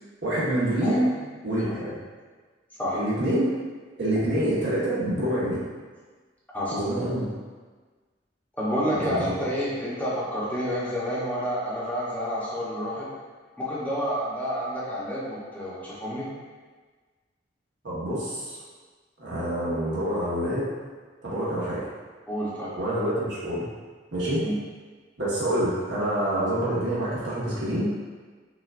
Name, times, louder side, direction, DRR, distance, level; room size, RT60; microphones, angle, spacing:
voice 1, 0.2-1.1 1.4-1.9 2.9-3.5 4.0-5.6 6.7-7.2 9.0-9.2 17.8-18.6 19.2-20.7 21.2-21.9 22.8-23.6 24.1-24.4 25.2-27.9, right 1 dB, 65° right, -8 dB, 1.2 m, -26 dB
voice 2, 0.8-1.2 1.5-1.7 2.8-3.0 6.5-6.9 8.6-13.1 13.6-16.3 22.3-22.7 24.4-24.6, equal, 10° left, -8 dB, 0.8 m, -29 dB
5.7 x 2.4 x 2.5 m, 1.4 s
head